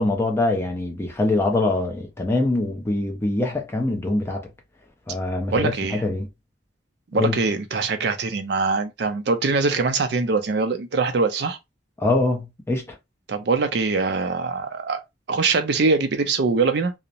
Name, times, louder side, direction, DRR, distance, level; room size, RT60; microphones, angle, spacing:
voice 1, 0.0-4.4 5.1-6.3 7.1-7.4 12.0-13.0, left 2 dB, 15° left, 0.5 m, -23 dB
voice 2, 5.5-6.0 7.1-11.6 13.3-15.0 15.3-16.9, right 4 dB, 65° right, 0.4 m, -23 dB
2.8 x 2.0 x 2.5 m
head